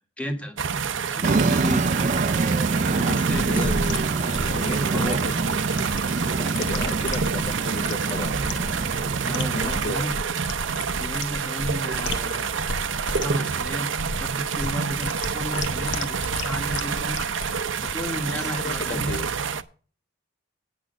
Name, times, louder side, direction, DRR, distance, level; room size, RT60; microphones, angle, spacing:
voice 1, 0.2-0.6 1.1-1.9 2.9-3.7 4.9-5.1 9.2-10.1 10.9-12.4 13.1-13.9 14.2-17.2 17.8-19.2, equal, 5° left, 5 dB, 1.4 m, -33 dB
sound 1, 0.6-19.6, right 6 dB, 85° right, 0.6 m, -28 dB
sound 2, 1.2-10.0, right 3 dB, 40° right, 0.4 m, -26 dB
sound 3, 3.3-19.5, left 2 dB, 75° left, 1.1 m, -33 dB
voice 2, 4.5-5.3 6.4-8.4 9.5-10.1 18.3-19.3, left 2 dB, 35° left, 6 dB, 0.7 m, -34 dB
9.0 x 6.1 x 7.8 m, 0.41 s
head